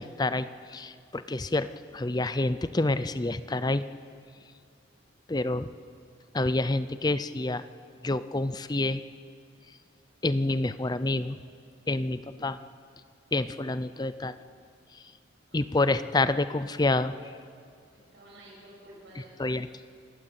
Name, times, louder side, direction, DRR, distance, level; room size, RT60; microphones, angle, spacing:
voice 1, 0.0-1.7 1.9-3.8 5.3-5.7 6.3-7.6 8.0-9.0 10.2-11.4 11.9-12.6 13.3-14.4 15.5-17.1 19.4-19.7, left 2 dB, 20° left, 13 dB, 0.5 m, -28 dB
voice 2, 15.5-15.9 17.9-19.9, right 1 dB, 65° right, -3 dB, 7.4 m, -52 dB
28.5 x 12.5 x 8.4 m, 2.3 s
head